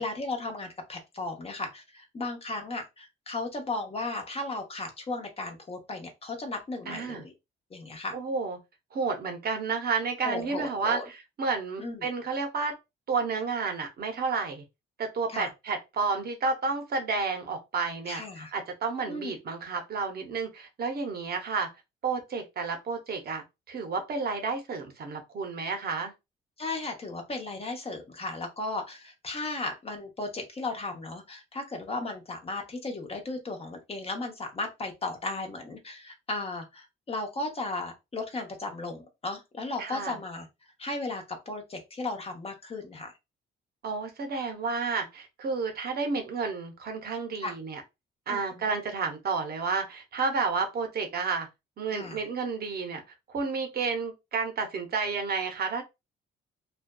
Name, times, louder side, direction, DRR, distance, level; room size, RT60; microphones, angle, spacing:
voice 1, 0.0-7.3 7.7-8.2 10.2-11.1 11.8-12.1 15.3-15.5 18.1-18.5 19.1-19.3 26.6-40.5 40.8-43.1 47.4-47.5 48.3-48.7 51.9-52.2, left 2 dB, 30° left, 0.8 m, -35 dB
voice 2, 6.9-7.2 8.1-8.6 8.9-12.7 13.1-14.6 15.0-21.7 22.0-26.1 39.8-40.2 43.8-47.8 48.3-51.5 51.8-53.0 53.3-55.8, right 4 dB, 50° right, 0.7 m, -31 dB
2.5 x 2.2 x 2.2 m
cardioid pair, 90°, 20 cm